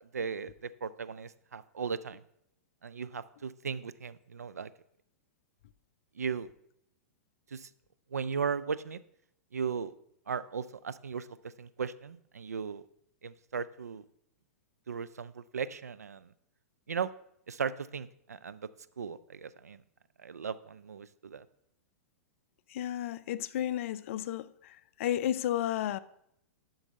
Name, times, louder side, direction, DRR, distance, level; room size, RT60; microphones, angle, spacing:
voice 1, 0.1-2.2 2.8-4.7 6.2-6.5 7.5-7.7 8.1-9.0 9.5-9.9 10.3-12.8 13.2-14.0 14.9-16.3 16.9-17.1 17.5-18.7 19.0-19.8 20.2-21.5, right 6 dB, 90° right, 0.4 m, -37 dB
voice 2, 22.7-26.0, left 11 dB, 55° left, 0.4 m, -33 dB
11.5 x 4.0 x 5.4 m
hypercardioid pair, 110°, 8 cm